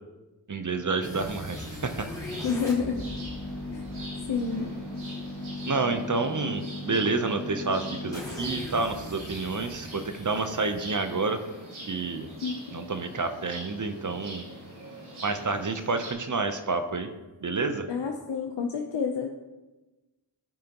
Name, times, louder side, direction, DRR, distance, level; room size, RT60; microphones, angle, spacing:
voice 1, 0.5-2.1 5.6-11.4 11.9-12.3 12.7-14.4 15.2-17.1 17.4-17.9, right 3 dB, 40° right, 8 dB, 0.7 m, -29 dB
sound 1, 1.0-12.0, left 2 dB, 5° left, 2.1 m, -38 dB
sound 2, 1.1-16.1, right 1 dB, 85° right, 2.9 m, -44 dB
voice 2, 2.4-3.0 3.7-3.8 4.3-4.7 12.4-12.6 17.9-19.4, left 5 dB, 65° left, 2 dB, 0.8 m, -29 dB
13.0 x 4.9 x 2.9 m, 1.1 s
cardioid pair, 50°, 47 cm